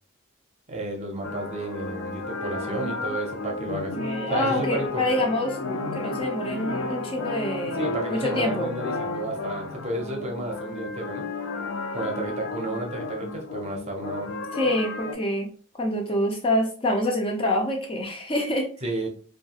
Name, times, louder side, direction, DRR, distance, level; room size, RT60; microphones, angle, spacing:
voice 1, 0.7-3.9 4.3-5.0 7.6-11.2 11.9-14.3 18.8-19.1, right 2 dB, 30° right, 1 dB, 0.6 m, -32 dB
sound 1, 1.2-15.1, left 3 dB, 80° left, 0.5 m, -33 dB
voice 2, 2.6-3.2 3.6-5.6 5.9-7.8 8.1-8.7 14.5-15.5 15.7-18.7, left 1 dB, 25° left, 2 dB, 0.4 m, -26 dB
2.7 x 2.3 x 2.8 m, 0.41 s
head